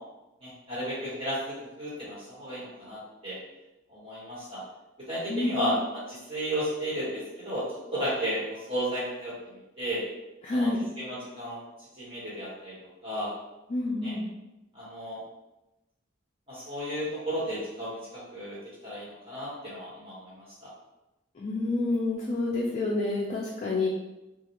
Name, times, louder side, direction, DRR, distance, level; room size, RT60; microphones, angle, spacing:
voice 1, 0.4-3.4 3.9-4.6 5.1-7.6 7.9-9.3 9.8-10.0 10.5-10.7 11.0-11.6 12.0-12.7 13.0-13.3 14.0-14.1 14.7-15.2 16.5-18.0 18.3-18.6 18.8-20.7, equal, 30° right, -9 dB, 1.3 m, -33 dB
voice 2, 5.3-5.7 10.4-10.8 13.7-14.3 21.4-23.9, left 2 dB, 35° left, -3 dB, 0.3 m, -28 dB
2.4 x 2.3 x 2.9 m, 0.98 s
head